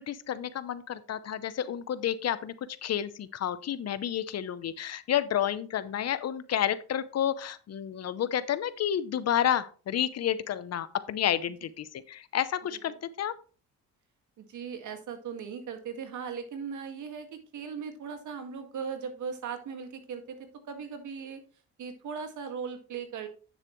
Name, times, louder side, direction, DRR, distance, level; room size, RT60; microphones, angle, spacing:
voice 1, 0.0-2.5 2.8-13.4, left 10 dB, 55° left, 15 dB, 0.7 m, -30 dB
voice 2, 14.4-21.4 21.8-23.3, right 6 dB, 65° right, 6 dB, 1.9 m, -38 dB
9.3 x 7.3 x 3.1 m, 0.37 s
cardioid pair, 90°, 32 cm